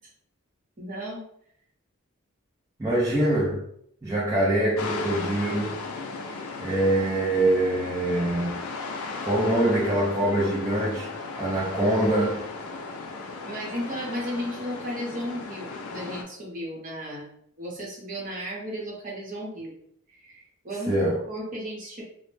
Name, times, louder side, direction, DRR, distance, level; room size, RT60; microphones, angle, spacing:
voice 1, 0.8-1.2 13.4-17.3 17.6-19.7 20.1-21.0 21.3-22.0, equal, 40° right, 0.9 m, -34 dB
voice 2, 2.8-3.6 4.0-5.8 6.6-8.6 9.2-11.1 11.4-12.4 20.9-21.2, right 1 dB, 15° right, 0.4 m, -24 dB
sound 1, 4.8-16.2, left 3 dB, 85° left, 0.4 m, -36 dB
2.1 x 2.0 x 3.1 m
head